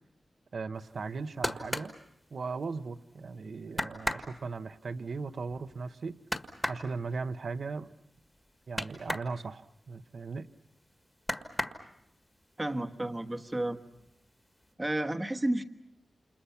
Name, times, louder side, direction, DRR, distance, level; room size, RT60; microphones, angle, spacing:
voice 1, 0.5-1.9 2.3-6.2 6.7-7.9 8.7-10.5, right 4 dB, 55° right, 10 dB, 1.0 m, -37 dB
sound 1, 1.0-3.0 3.3-3.4 3.7-9.3 9.7-10.8 11.2-12.3 12.7-13.3 13.6-14.3 14.6-14.7, left 1 dB, 10° left, 1.6 m, -37 dB
voice 2, 12.6-13.8 14.8-15.6, right 1 dB, 15° right, 7 dB, 1.2 m, -31 dB
29.5 x 28.5 x 5.8 m, 0.82 s
wide cardioid pair, 180°, 0 cm